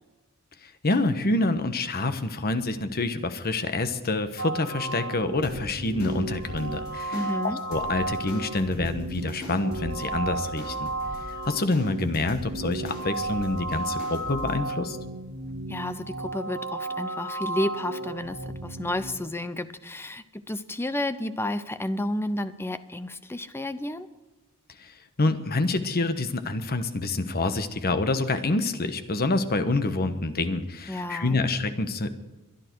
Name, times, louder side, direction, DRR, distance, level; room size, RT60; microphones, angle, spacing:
voice 1, 0.6-7.2 7.4-10.9 11.5-15.0 24.8-24.9 25.2-32.3, left 2 dB, 45° left, 9 dB, 1.2 m, -27 dB
sound 1, 4.4-19.1, right 2 dB, 70° right, 4.2 m, -34 dB
sound 2, 5.4-14.6, left 1 dB, 65° left, 5.9 m, -42 dB
voice 2, 7.1-7.6 15.7-24.1 30.9-31.4, left 1 dB, 10° left, 12 dB, 0.7 m, -31 dB
22.5 x 11.0 x 4.7 m, 1.1 s
head